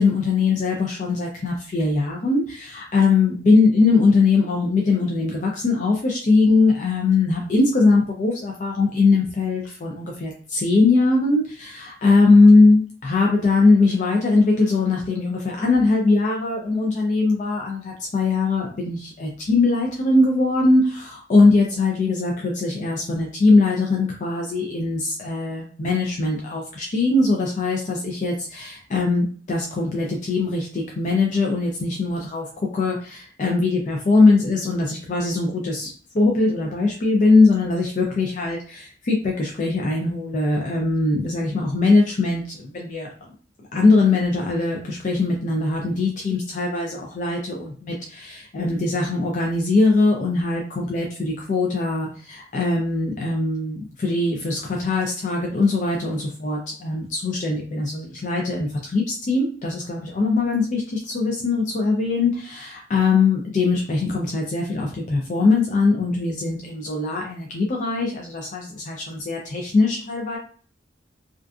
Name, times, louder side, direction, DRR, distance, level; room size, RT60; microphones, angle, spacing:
voice 1, 0.0-43.1 43.6-70.4, left 3 dB, 40° left, 0 dB, 0.4 m, -21 dB
2.4 x 2.3 x 2.3 m, 0.43 s
head